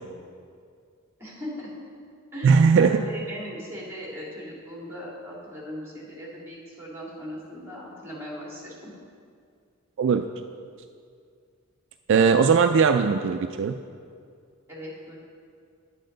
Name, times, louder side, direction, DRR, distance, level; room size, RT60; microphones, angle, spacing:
voice 1, 1.2-1.8 2.3-8.9 14.7-15.2, equal, 10° right, -5 dB, 2.6 m, -39 dB
voice 2, 2.4-3.0 10.0-10.2 12.1-13.7, right 5 dB, 60° right, 7 dB, 0.3 m, -19 dB
10.0 x 8.6 x 3.9 m, 2.2 s
head